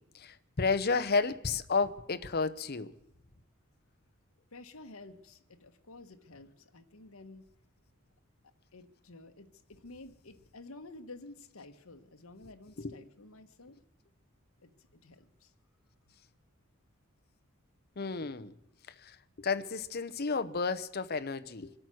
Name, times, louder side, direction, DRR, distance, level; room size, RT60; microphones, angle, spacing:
voice 1, 0.1-2.9 12.8-12.9 18.0-18.5 19.0-21.7, left 4 dB, 45° left, 0.8 m, -32 dB
voice 2, 4.5-7.4 8.7-13.8 14.6-15.5, left 2 dB, 75° left, 1.2 m, -51 dB
25.0 x 8.9 x 6.3 m
head